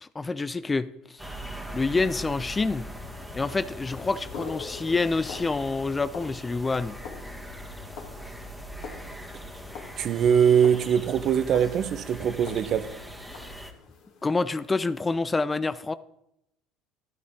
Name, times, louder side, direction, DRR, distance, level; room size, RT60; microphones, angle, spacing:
voice 1, 0.0-0.9 1.7-2.9 3.3-6.9 14.2-15.9, left 3 dB, 20° left, 0.7 m, -27 dB
sound 1, 1.2-13.7, equal, 5° right, 2.0 m, -41 dB
sound 2, 3.9-15.1, left 5 dB, 65° left, 3.1 m, -45 dB
voice 2, 10.0-12.9, right 8 dB, 50° right, 1.0 m, -22 dB
12.5 x 12.0 x 3.7 m
hypercardioid pair, 75°, 0 cm